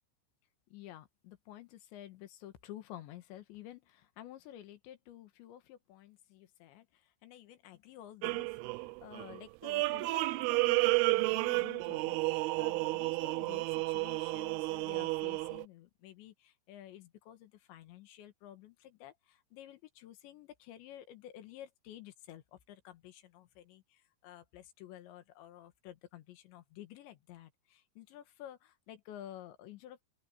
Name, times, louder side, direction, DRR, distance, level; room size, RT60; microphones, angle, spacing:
voice 1, 0.7-30.0, left 12 dB, 90° left, 3.8 m, -52 dB
sound 1, 8.2-15.7, right 23 dB, 85° right, 2.2 m, -32 dB
open air
omnidirectional pair, 5.0 m